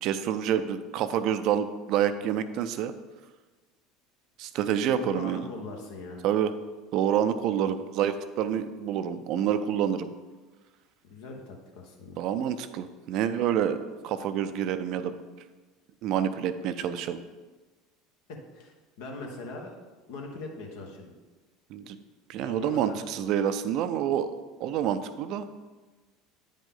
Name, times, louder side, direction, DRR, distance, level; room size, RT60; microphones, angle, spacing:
voice 1, 0.0-2.9 4.4-5.5 6.2-6.5 6.9-10.1 12.2-15.2 16.0-17.2 21.7-22.0 22.3-24.3 24.6-25.5, right 9 dB, 55° right, 11 dB, 0.5 m, -28 dB
voice 2, 4.9-6.2 7.6-7.8 11.0-12.2 18.3-19.8 20.1-21.1 22.4-23.3, left 2 dB, 70° left, 1 dB, 1.4 m, -41 dB
8.8 x 5.2 x 3.9 m, 1.3 s
hypercardioid pair, 75°, 0 cm